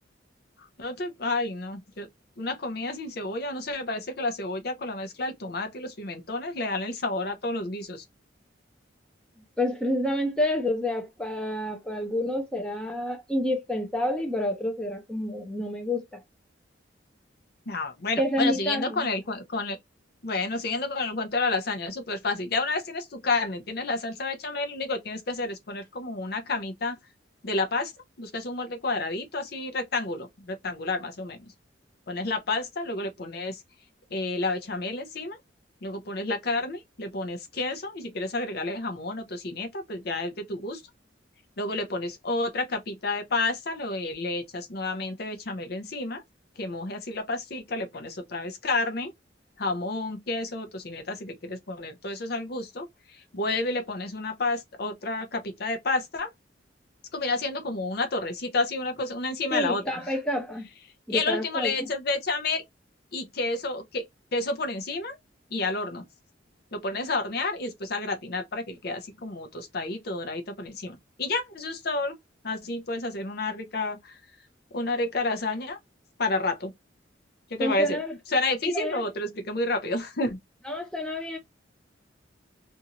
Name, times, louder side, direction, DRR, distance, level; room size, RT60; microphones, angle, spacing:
voice 1, 0.6-2.1 2.4-8.0 17.7-19.8 20.2-27.0 27.4-27.9 28.2-31.5 32.1-33.6 34.1-35.4 35.8-40.8 41.6-46.2 46.6-49.1 49.6-56.3 57.1-60.1 61.1-62.6 63.1-64.0 64.3-65.2 65.5-66.0 66.7-72.1 72.4-74.2 74.7-75.8 76.2-76.7 77.5-78.0 78.3-80.4, left 2 dB, 55° left, 0.7 m, -30 dB
voice 2, 9.6-16.2 18.2-19.1 59.5-60.7 61.1-61.9 77.6-78.1 78.7-79.1 80.7-81.4, left 1 dB, 5° left, 0.6 m, -29 dB
2.7 x 2.5 x 2.8 m
head